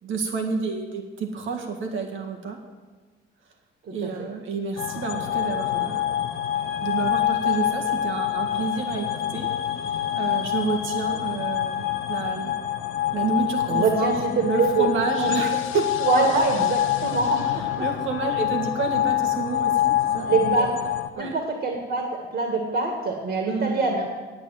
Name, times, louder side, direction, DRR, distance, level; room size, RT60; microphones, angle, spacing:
voice 1, 0.0-2.6 3.9-6.0 6.8-9.1 9.3-9.5 10.2-12.6 13.1-14.2 14.4-15.9 17.5-20.7 21.2-21.4 23.5-23.9, right 4 dB, 80° right, 3 dB, 1.8 m, -29 dB
sound 1, 4.8-21.1, left 11 dB, 85° left, 0.8 m, -26 dB
voice 2, 13.7-14.9 15.2-15.3 16.0-17.6 20.3-20.7 21.2-24.1, right 4 dB, 55° right, 1 dB, 2.1 m, -24 dB
8.9 x 8.9 x 9.2 m, 1.4 s
cardioid pair, 90°, 20 cm